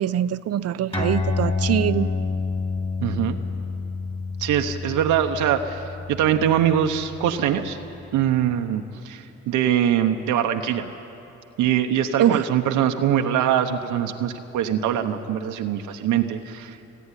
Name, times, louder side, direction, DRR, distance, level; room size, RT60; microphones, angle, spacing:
voice 1, 0.0-2.1 12.2-12.4, right 10 dB, 55° right, 15 dB, 0.6 m, -22 dB
sound 1, 0.9-7.9, left 4 dB, 20° left, 3.3 m, -28 dB
voice 2, 3.0-3.4 4.4-7.8 8.1-10.9 11.6-16.8, right 10 dB, 85° right, 5 dB, 1.0 m, -23 dB
28.5 x 9.5 x 9.9 m, 3.0 s
cardioid pair, 90°, 30 cm